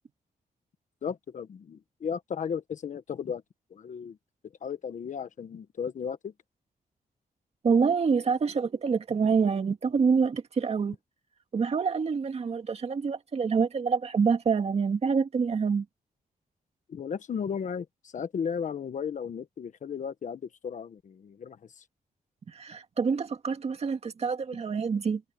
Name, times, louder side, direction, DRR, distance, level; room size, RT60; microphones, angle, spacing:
voice 1, 1.0-3.4 3.7-4.2 4.6-6.3 16.9-21.8, left 7 dB, 55° left, 1.4 m, -35 dB
voice 2, 7.6-11.0 11.5-15.9 22.5-25.2, right 5 dB, 45° right, 2.1 m, -26 dB
wide cardioid pair, 155°, 15 cm